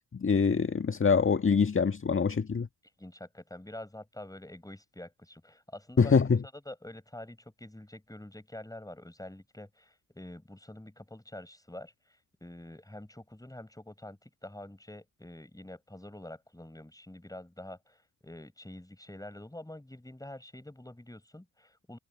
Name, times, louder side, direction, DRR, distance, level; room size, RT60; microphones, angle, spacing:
voice 1, 0.1-2.7 6.0-6.4, left 5 dB, 25° left, 1.9 m, -24 dB
voice 2, 3.0-6.1 6.5-22.0, left 1 dB, 5° left, 6.7 m, -47 dB
figure-of-eight pair, 45°, 50 cm